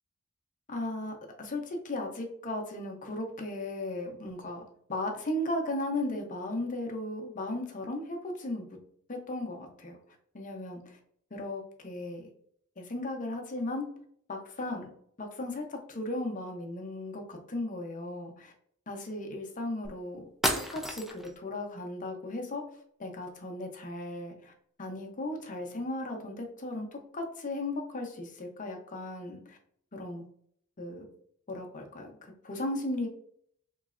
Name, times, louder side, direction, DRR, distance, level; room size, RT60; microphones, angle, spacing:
voice 1, 0.7-4.6 4.9-8.7 9.1-10.0 10.3-11.0 11.3-12.3 12.8-13.9 14.3-14.9 15.2-18.5 18.9-20.2 20.7-22.6 23.0-24.5 24.8-29.6 29.9-30.2 30.8-31.1 31.5-33.1, left 1 dB, 40° left, 2 dB, 0.7 m, -36 dB
sound 1, 19.8-19.9 20.4-21.3, equal, ahead, 0.4 m, -31 dB
3.8 x 3.1 x 2.4 m, 0.65 s
head